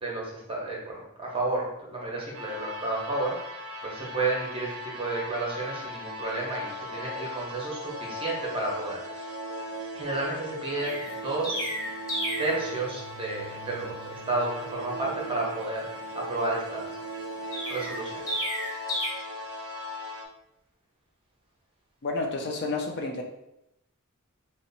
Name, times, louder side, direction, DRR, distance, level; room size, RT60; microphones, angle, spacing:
voice 1, 0.0-3.4 3.8-9.3 9.9-11.7 12.4-16.9 17.7-18.2, right 2 dB, 25° right, -4 dB, 0.9 m, -31 dB
sound 1, 2.3-20.3, equal, 70° right, 0.5 m, -38 dB
Chirp tweet, 10.8-12.6 17.5-19.1, equal, 15° left, 1.0 m, -32 dB
voice 2, 22.0-23.2, left 3 dB, 50° left, 2 dB, 0.4 m, -30 dB
2.8 x 2.1 x 4.0 m, 0.85 s
head